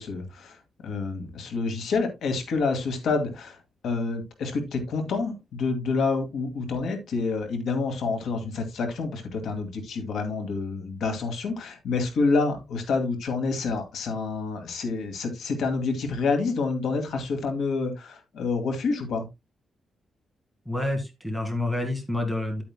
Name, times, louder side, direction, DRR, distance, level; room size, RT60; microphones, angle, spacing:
voice 1, 0.0-3.6 3.8-19.3, left 4 dB, 85° left, 5 dB, 2.2 m, -28 dB
voice 2, 20.6-22.6, left 2 dB, 5° left, 4 dB, 1.6 m, -28 dB
10.5 x 8.5 x 2.2 m, 0.22 s
wide cardioid pair, 180°, 0 cm